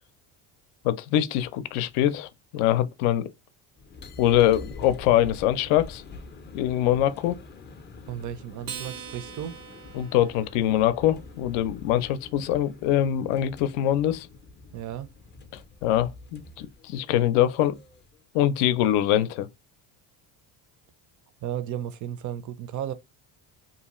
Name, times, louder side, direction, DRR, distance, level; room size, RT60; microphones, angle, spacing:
voice 1, 0.8-3.3 4.2-6.0 6.5-7.4 9.9-14.3 15.8-17.8 18.3-19.5, left 12 dB, 85° left, 0.6 m, -23 dB
sound 1, 3.8-18.2, left 3 dB, 25° left, 0.4 m, -45 dB
voice 2, 8.1-9.6 14.7-15.1 21.4-22.9, right 10 dB, 40° right, 0.5 m, -34 dB
Acoustic guitar, 8.6-11.3, right 7 dB, 85° right, 0.8 m, -42 dB
2.7 x 2.4 x 2.9 m
cardioid pair, 100°, 48 cm